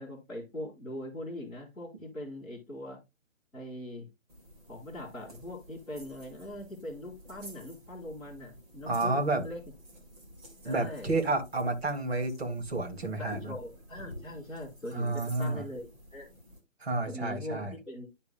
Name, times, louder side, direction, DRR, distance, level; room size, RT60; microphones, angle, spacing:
voice 1, 0.0-3.0 3.5-4.1 4.7-9.6 10.6-11.2 13.2-16.3 17.1-18.1, left 1 dB, ahead, -13 dB, 2.8 m, -41 dB
sound 1, 4.3-16.6, equal, 30° right, 2.2 m, -51 dB
voice 2, 8.9-9.4 10.6-13.5 14.9-15.6 16.8-17.7, right 2 dB, 50° right, 3 dB, 2.3 m, -30 dB
11.5 x 5.2 x 2.2 m, 0.22 s
hypercardioid pair, 180°, 40 cm